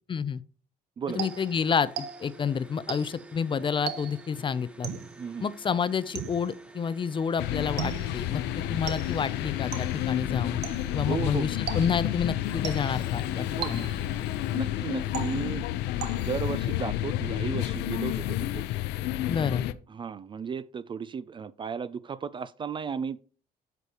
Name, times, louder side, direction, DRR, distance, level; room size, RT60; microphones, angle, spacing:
voice 1, 0.1-0.4 1.1-4.9 5.4-10.6 10.9-13.9 19.3-19.7, left 6 dB, 30° left, 0.5 m, -29 dB
voice 2, 1.0-1.3 5.2-5.5 8.7-8.8 11.0-11.5 13.6-13.8 14.5-15.8 16.2-18.6 19.9-23.2, right 6 dB, 30° right, 0.4 m, -35 dB
sound 1, 1.1-15.4, right 3 dB, 5° right, 0.9 m, -49 dB
sound 2, 1.2-2.5 2.9-3.3 3.9-4.4 4.8-5.2 6.1-6.6 7.8-8.2 8.9-9.3 9.7-10.1 10.6-11.0 11.7-12.2 12.6-13.1 13.6-14.2 15.1-15.6 16.0-16.5, right 9 dB, 80° right, 1.1 m, -38 dB
sound 3, 7.4-19.7, left 13 dB, 85° left, 0.5 m, -30 dB
8.0 x 7.0 x 2.9 m
cardioid pair, 110°, 17 cm